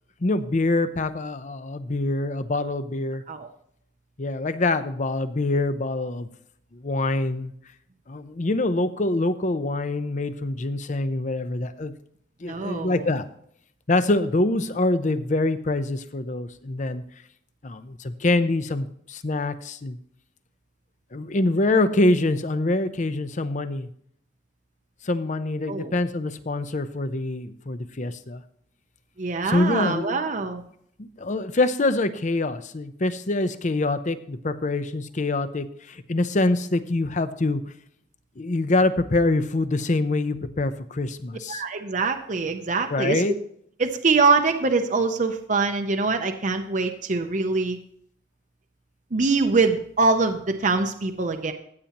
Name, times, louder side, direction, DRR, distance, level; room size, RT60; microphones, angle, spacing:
voice 1, 0.2-3.2 4.2-6.3 6.7-7.5 8.1-11.9 12.4-13.2 13.9-17.0 17.6-20.0 21.1-23.9 25.0-28.4 29.5-30.2 31.0-37.6 38.4-41.6 42.9-43.3, left 2 dB, 45° left, 11 dB, 0.7 m, -25 dB
voice 2, 12.5-13.1 25.7-25.9 29.2-30.6 41.5-43.2 43.8-47.8 49.1-51.5, right 4 dB, 45° right, 6 dB, 0.7 m, -23 dB
14.5 x 8.6 x 3.0 m, 0.67 s
head